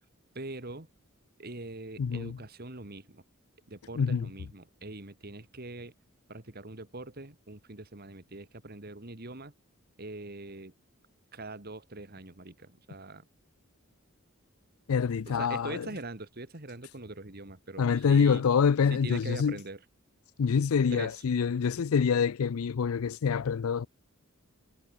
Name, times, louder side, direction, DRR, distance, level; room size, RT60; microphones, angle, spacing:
voice 1, 0.3-0.9 1.4-3.2 3.7-5.9 6.3-9.5 10.0-10.7 11.3-13.2 15.3-18.4 18.9-19.8 20.9-21.2, right 2 dB, 45° right, 2.1 m, -42 dB
voice 2, 2.0-2.4 4.0-4.3 14.9-15.9 17.8-19.6 20.4-23.9, left 6 dB, 85° left, 0.4 m, -26 dB
head